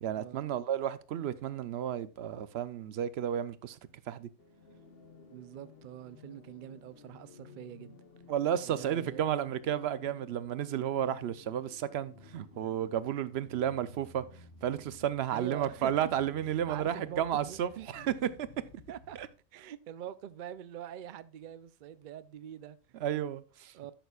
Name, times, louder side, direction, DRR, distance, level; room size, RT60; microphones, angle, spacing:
voice 1, 0.0-3.8 4.1-4.3 8.3-14.2 14.6-18.1 19.2-19.3 23.0-23.7, right 10 dB, 65° right, 0.7 m, -32 dB
sound 1, 4.4-19.4, left 3 dB, 50° left, 1.1 m, -55 dB
voice 2, 5.3-8.0 8.6-9.2 13.7-13.8 15.3-15.9 16.4-17.9 18.2-18.3 18.9-19.2 19.5-23.0 23.7-23.9, right 11 dB, 85° right, 0.4 m, -44 dB
13.0 x 6.8 x 2.3 m
omnidirectional pair, 1.4 m